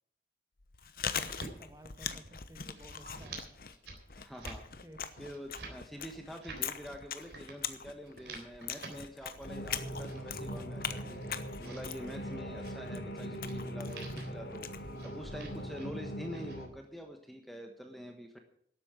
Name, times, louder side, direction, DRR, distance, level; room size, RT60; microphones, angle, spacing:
Chewing mastication, 0.6-15.7, left 7 dB, 55° left, 0.9 m, -42 dB
sound 1, 1.0-1.5 1.9-2.3 2.6-3.4 3.7-4.0 4.3-4.6 5.1-5.8 6.2-6.6 7.2-7.6 8.0-8.9 9.4-10.2 10.8-11.8 12.5-12.8 13.4-13.6 13.9-14.3 14.9-15.9 16.2-16.6, right 3 dB, 80° right, 3.7 m, -49 dB
voice 1, 1.2-3.5 4.8-5.0, right 1 dB, 20° right, 6 dB, 1.5 m, -54 dB
voice 2, 4.2-4.6 5.2-11.2 11.6-14.7 15.0-18.4, equal, ahead, 3 dB, 1.2 m, -46 dB
sound 2, 9.4-16.7, equal, 85° left, 3.2 m, -41 dB
12.0 x 8.6 x 8.8 m, 0.67 s
head